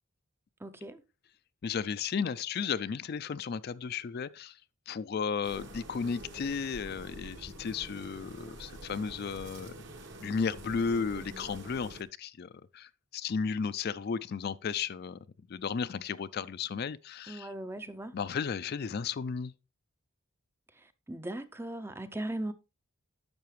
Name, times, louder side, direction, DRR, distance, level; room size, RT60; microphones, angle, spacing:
voice 1, 0.6-1.0 17.3-18.1 21.1-22.5, right 1 dB, 10° right, 0.5 m, -38 dB
voice 2, 1.6-4.6 4.9-9.7 10.2-15.2 15.5-17.5 18.1-19.5, left 6 dB, 45° left, 0.3 m, -34 dB
sound 1, 5.4-12.0, right 1 dB, 55° right, 1.3 m, -47 dB
10.5 x 6.8 x 3.1 m
head